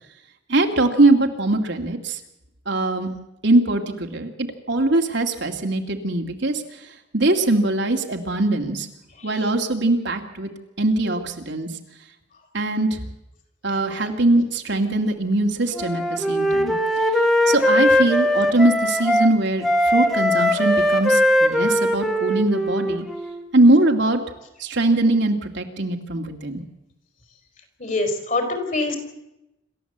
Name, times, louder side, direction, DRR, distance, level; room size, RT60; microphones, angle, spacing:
voice 1, 0.5-2.2 2.7-3.1 3.4-6.6 7.1-8.9 9.2-10.5 10.8-11.7 12.5-13.0 13.6-16.7 17.5-23.1 23.5-24.2 24.6-26.6, right 2 dB, 60° right, 3 dB, 2.3 m, -21 dB
Wind instrument woodwind instrument, 15.8-19.3 19.6-23.4, equal, ahead, 1.6 m, -20 dB
voice 2, 27.8-29.0, left 2 dB, 45° left, 6 dB, 4.5 m, -24 dB
27.0 x 13.5 x 8.0 m, 0.89 s
head